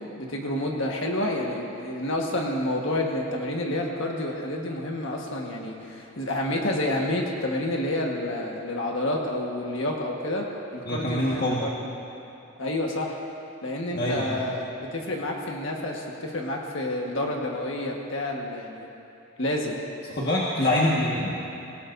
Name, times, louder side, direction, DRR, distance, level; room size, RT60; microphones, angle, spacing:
voice 1, 0.2-11.7 12.6-13.2 13.6-18.9 19.4-19.8, left 1 dB, 65° left, -1 dB, 1.5 m, -29 dB
voice 2, 10.8-11.6 13.9-14.4 20.1-21.4, left 1 dB, 45° left, -5 dB, 1.6 m, -25 dB
25.5 x 18.0 x 2.7 m, 2.8 s
head